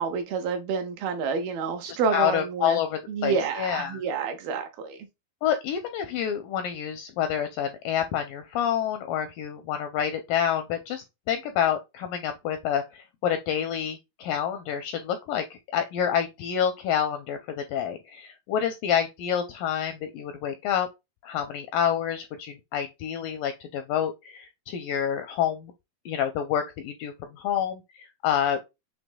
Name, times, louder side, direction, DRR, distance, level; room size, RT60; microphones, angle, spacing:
voice 1, 0.0-2.8 3.1-5.0, right 5 dB, 75° right, 2.5 m, -28 dB
voice 2, 1.9-4.0 5.4-20.9 21.2-25.7 26.1-28.6, left 9 dB, 80° left, 2.0 m, -28 dB
7.0 x 3.1 x 2.3 m
omnidirectional pair, 4.5 m